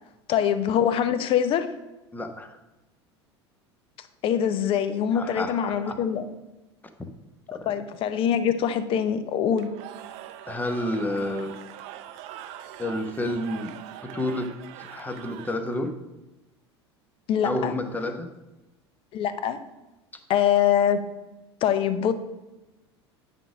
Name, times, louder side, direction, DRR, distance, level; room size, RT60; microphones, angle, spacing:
voice 1, 0.3-1.7 4.2-6.3 7.5-9.7 17.3-17.7 19.1-19.6 20.3-21.0 21.6-22.1, left 9 dB, 40° left, 11 dB, 0.7 m, -24 dB
voice 2, 2.1-2.6 5.1-6.0 7.5-7.7 10.5-11.5 12.8-13.7 14.0-15.9 17.4-18.3, left 1 dB, 10° left, 7 dB, 0.9 m, -30 dB
Cheering / Crowd, 9.5-15.9, right 12 dB, 45° right, 0.5 m, -43 dB
9.1 x 3.6 x 6.2 m, 1.0 s
figure-of-eight pair, 75°, 14 cm